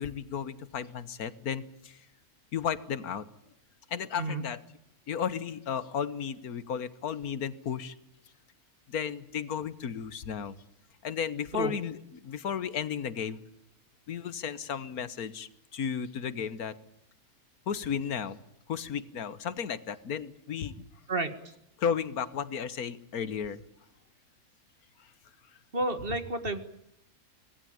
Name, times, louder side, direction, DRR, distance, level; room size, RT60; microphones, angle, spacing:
voice 1, 0.0-2.0 2.5-3.3 3.9-4.6 5.1-7.9 8.9-10.6 11.0-13.4 14.1-16.8 17.7-18.4 18.7-20.8 21.8-23.6 25.0-25.1, left 7 dB, 90° left, 14 dB, 1.6 m, -34 dB
voice 2, 25.7-26.6, right 2 dB, 40° right, 9 dB, 2.0 m, -30 dB
25.5 x 18.5 x 8.8 m, 0.81 s
omnidirectional pair, 1.5 m